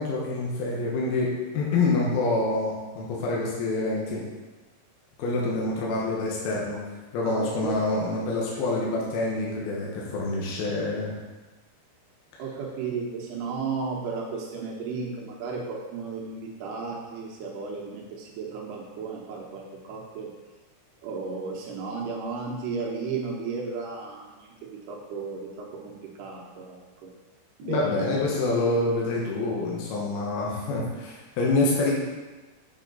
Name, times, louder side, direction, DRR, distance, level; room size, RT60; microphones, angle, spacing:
voice 1, 0.0-4.2 5.2-6.8 7.1-11.1 27.6-31.9, left 2 dB, 70° left, -4 dB, 2.9 m, -26 dB
voice 2, 7.3-7.7 8.1-8.2 12.4-20.3 21.0-27.1 27.6-28.2, right 4 dB, 75° right, -1 dB, 2.8 m, -34 dB
7.5 x 7.1 x 3.9 m, 1.2 s
omnidirectional pair, 5.1 m